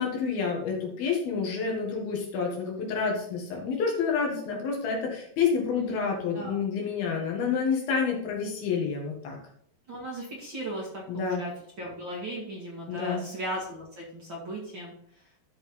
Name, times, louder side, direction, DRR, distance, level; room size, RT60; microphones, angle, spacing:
voice 1, 0.0-9.4 11.1-11.4 12.9-13.2, left 5 dB, 90° left, 0 dB, 3.9 m, -29 dB
voice 2, 5.8-6.6 9.9-11.5 11.8-14.9, right 1 dB, 40° right, -4 dB, 2.1 m, -37 dB
13.0 x 4.8 x 3.8 m, 0.67 s
omnidirectional pair, 4.2 m